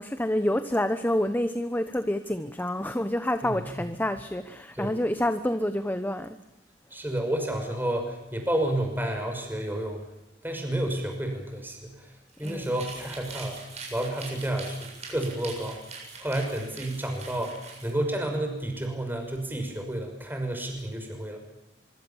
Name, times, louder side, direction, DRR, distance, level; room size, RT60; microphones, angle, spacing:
voice 1, 0.0-6.4 12.4-12.7, left 1 dB, 10° left, 10 dB, 1.0 m, -28 dB
voice 2, 6.9-10.0 10.4-12.1 12.4-13.6 13.9-15.8 16.2-21.4, right 1 dB, 10° right, 4 dB, 6.0 m, -30 dB
sound 1, 12.3-17.9, right 4 dB, 40° right, 7.6 m, -43 dB
25.0 x 24.5 x 7.2 m, 0.92 s
head